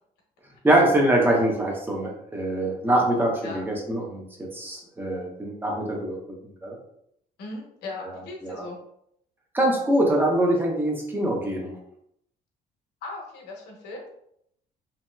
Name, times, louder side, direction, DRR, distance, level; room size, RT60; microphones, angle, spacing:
voice 1, 0.6-6.2 6.6-6.8 8.4-8.6 9.5-11.7, right 1 dB, 10° right, 0 dB, 0.7 m, -23 dB
voice 2, 7.4-8.8 13.0-14.0, left 2 dB, 80° left, 0 dB, 0.9 m, -38 dB
2.8 x 2.8 x 2.2 m, 0.74 s
cardioid pair, 110°, 17 cm